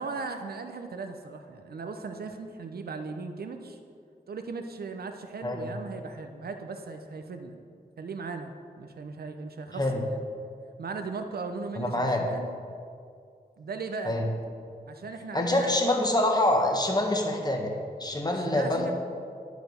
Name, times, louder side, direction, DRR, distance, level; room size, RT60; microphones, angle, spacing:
voice 1, 0.0-3.8 4.3-7.6 8.0-10.2 10.8-12.5 13.6-14.2 14.9-15.9 18.3-18.9, right 4 dB, 75° right, 6 dB, 0.7 m, -38 dB
voice 2, 11.8-12.2 14.0-14.3 15.3-17.7 18.0-18.9, left 1 dB, 25° left, 2 dB, 1.5 m, -25 dB
10.5 x 5.1 x 6.4 m, 2.3 s
wide cardioid pair, 65°, 16 cm